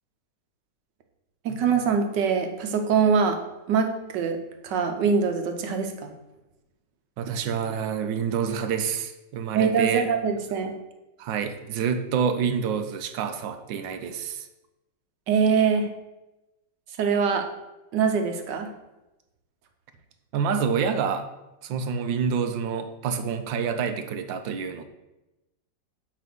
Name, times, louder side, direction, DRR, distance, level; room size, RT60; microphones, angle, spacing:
voice 1, 1.4-3.4 3.7-4.4 4.6-6.1 9.5-10.7 15.3-15.9 17.0-17.5 17.9-18.7, right 6 dB, 75° right, 5 dB, 1.5 m, -23 dB
voice 2, 7.2-10.1 11.2-14.5 20.3-21.3 21.6-24.9, right 6 dB, 90° right, 8 dB, 1.4 m, -27 dB
8.6 x 3.4 x 6.1 m, 0.97 s
omnidirectional pair, 2.0 m